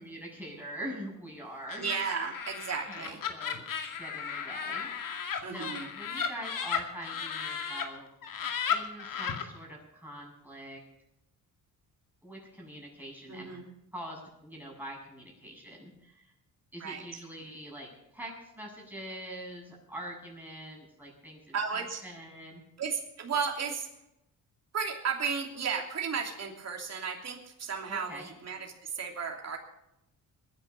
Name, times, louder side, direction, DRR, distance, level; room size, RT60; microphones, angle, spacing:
voice 1, 0.0-1.9 2.9-3.7 4.0-8.1 8.7-10.8 12.2-13.6 13.9-16.3 16.7-22.6 27.9-28.3, right 1 dB, 5° right, -3 dB, 7.8 m, -44 dB
Laughter, 1.7-7.8 8.2-9.4, left 7 dB, 65° left, 2.4 m, -35 dB
voice 2, 1.8-3.2 5.4-5.9 13.3-13.7 16.8-17.0 21.5-22.0 22.8-23.9 24.7-29.6, right 6 dB, 45° right, 1 dB, 3.0 m, -34 dB
22.0 x 10.0 x 5.6 m, 0.85 s
cardioid pair, 110°, 36 cm